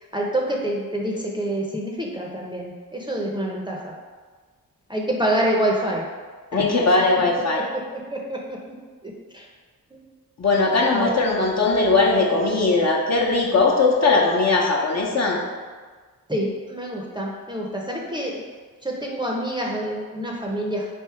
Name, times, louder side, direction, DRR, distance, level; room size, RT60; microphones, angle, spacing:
voice 1, 0.1-3.9 4.9-6.0 6.5-6.7 8.1-8.8 9.0-9.5 9.9-10.0 10.9-11.1 16.3-18.4 18.8-20.9, right 1 dB, 10° right, -2 dB, 0.7 m, -27 dB
voice 2, 6.5-7.6 10.4-15.4, left 3 dB, 45° left, -2 dB, 0.9 m, -19 dB
3.5 x 2.7 x 4.5 m, 1.5 s
cardioid pair, 50°, 36 cm